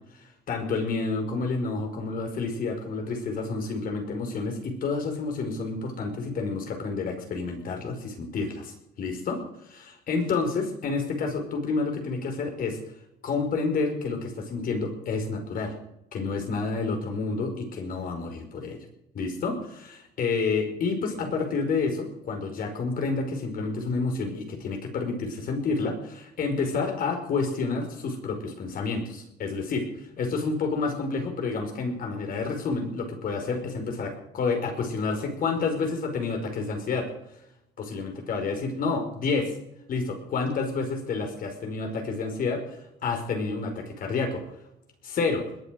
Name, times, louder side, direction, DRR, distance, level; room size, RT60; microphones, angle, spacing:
voice 1, 0.5-12.8 13.2-15.7 16.1-18.8 19.1-29.9 30.2-37.1 37.8-39.5 39.9-44.4 45.0-45.5, left 4 dB, 55° left, 4 dB, 5.1 m, -29 dB
21.0 x 8.3 x 6.6 m, 0.82 s
cardioid pair, 110°, 17 cm